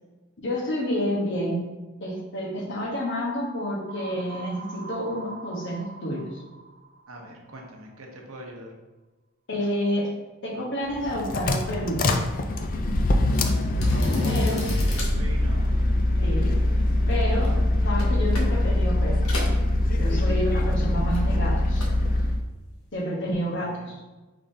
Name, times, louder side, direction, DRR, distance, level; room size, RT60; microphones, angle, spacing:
voice 1, 0.4-1.7 2.0-6.4 9.5-10.1 10.4-12.2 14.2-14.6 16.2-16.6 17.1-17.6 17.8-19.2 19.9-21.9 22.9-23.9, equal, 60° left, -3 dB, 1.0 m, -29 dB
sound 1, 3.9-7.7, right 3 dB, 40° right, 0.3 m, -43 dB
voice 2, 7.1-8.7 13.9-15.7 23.6-23.9, right 1 dB, 90° right, 0 dB, 0.9 m, -41 dB
sound 2, 10.9-22.4, left 1 dB, 40° left, 0.4 m, -23 dB
sound 3, 13.3-20.5 20.8-22.1 22.4-22.7, left 2 dB, 85° left, 1.0 m, -39 dB
4.8 x 3.6 x 2.7 m, 1.2 s
head